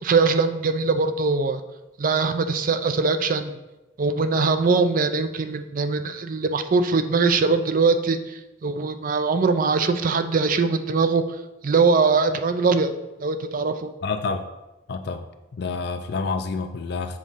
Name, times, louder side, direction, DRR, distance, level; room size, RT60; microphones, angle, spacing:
voice 1, 0.0-1.6 2.0-3.6 4.0-11.2 11.6-12.9 13.2-13.9, right 4 dB, 45° right, 9 dB, 0.4 m, -22 dB
voice 2, 14.0-14.5 14.9-17.2, left 4 dB, 55° left, 7 dB, 0.4 m, -28 dB
7.3 x 3.6 x 5.5 m, 1.0 s
head